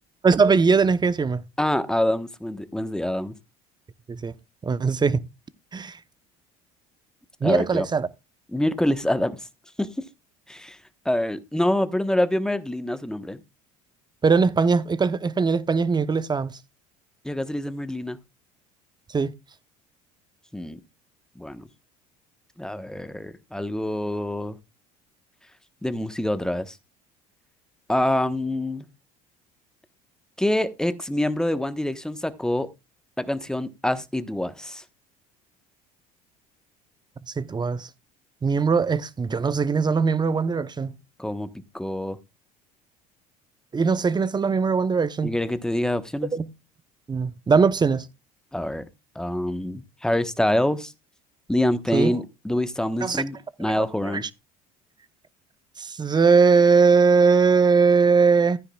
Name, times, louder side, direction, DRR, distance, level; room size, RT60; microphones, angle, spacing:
voice 1, 0.2-1.4 4.1-4.3 4.6-5.2 5.7-6.0 7.4-8.1 14.2-16.5 19.1-19.3 37.4-37.9 38.4-40.9 43.7-45.3 46.3-46.4 47.1-48.1 51.9-52.2 53.0-53.2 53.7-54.2 55.8-58.6, right 5 dB, 25° right, 0.9 m, -20 dB
voice 2, 1.6-3.3 7.4-7.8 8.5-9.4 9.8-10.1 10.5-10.8 11.0-13.4 17.2-18.2 20.5-20.8 21.4-21.6 22.6-24.6 25.8-26.8 27.9-28.8 30.4-32.7 33.2-34.8 41.2-42.2 45.2-46.3 48.5-48.8 49.1-50.9 51.5-54.3, left 1 dB, 5° left, 1.2 m, -26 dB
14.5 x 9.8 x 2.4 m
hypercardioid pair, 75°, 18 cm